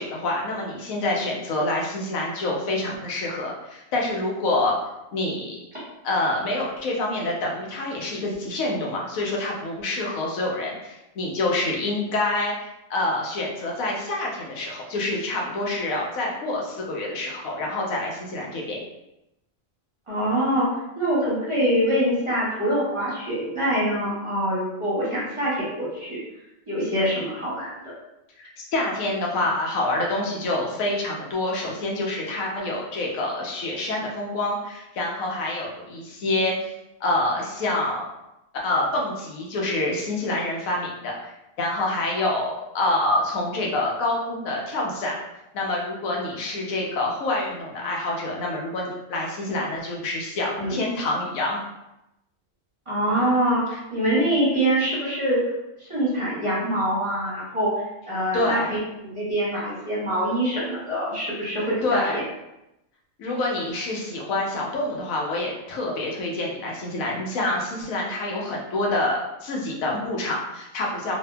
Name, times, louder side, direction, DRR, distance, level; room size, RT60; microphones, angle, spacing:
voice 1, 0.0-4.7 5.1-5.6 6.0-12.5 12.9-18.8 28.4-36.5 37.0-38.1 38.6-41.3 41.6-45.2 45.5-51.6 58.3-58.7 61.8-62.2 63.2-71.2, left 2 dB, 90° left, -2 dB, 1.1 m, -27 dB
voice 2, 20.1-20.7 21.0-26.2 26.7-27.7 50.6-50.8 52.9-55.4 55.8-57.7 58.1-62.2, right 1 dB, 30° right, -9 dB, 0.8 m, -24 dB
2.7 x 2.5 x 2.2 m, 0.89 s
omnidirectional pair, 1.4 m